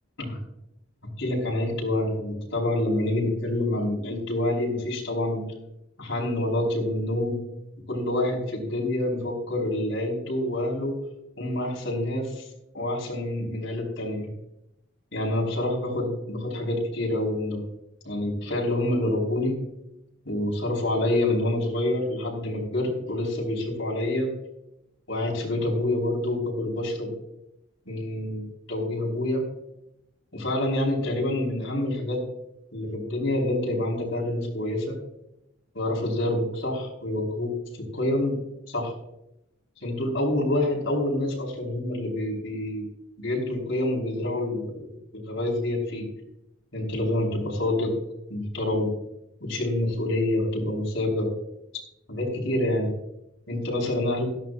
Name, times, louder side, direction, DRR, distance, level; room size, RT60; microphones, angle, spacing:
voice 1, 1.2-5.4 6.0-7.4 7.9-11.0 11.4-12.5 12.7-14.3 15.1-17.6 18.0-19.6 20.3-24.3 25.1-27.1 27.9-29.5 30.3-32.2 32.7-35.0 35.7-37.5 37.8-38.4 38.7-38.9 39.8-42.9 43.2-44.9 45.1-46.1 46.7-48.0 48.3-48.9 49.4-51.3 52.1-52.9 53.5-54.2, left 1 dB, 65° left, -2 dB, 5.2 m, -27 dB
16.5 x 13.5 x 2.7 m, 0.85 s
head